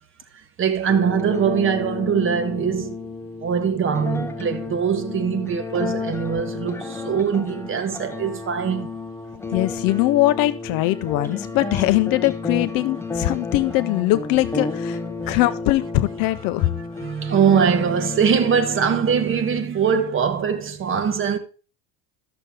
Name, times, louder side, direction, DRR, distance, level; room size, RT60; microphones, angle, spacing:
voice 1, 0.6-3.0 3.4-8.9 17.0-21.4, right 7 dB, 25° right, 1.2 m, -22 dB
sound 1, 0.9-19.8, left 4 dB, 5° left, 0.6 m, -32 dB
voice 2, 9.5-15.0 15.3-16.7, left 17 dB, 45° left, 0.5 m, -21 dB
13.0 x 6.7 x 3.6 m
supercardioid pair, 140°, 49 cm